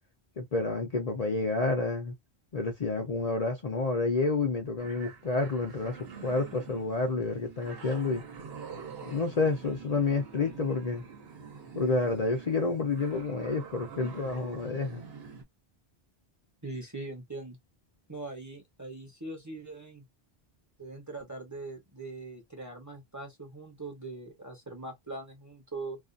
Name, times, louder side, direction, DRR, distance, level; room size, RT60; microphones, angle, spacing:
voice 1, 0.4-2.2 2.5-8.2 9.0-11.1 11.7-15.0, left 3 dB, 45° left, 0.6 m, -29 dB
sound 1, 4.8-15.4, right 5 dB, 70° right, 1.0 m, -46 dB
voice 2, 16.6-17.6 18.1-20.0 20.8-26.0, right 2 dB, 20° right, 0.8 m, -41 dB
2.4 x 2.4 x 2.4 m
omnidirectional pair, 1.1 m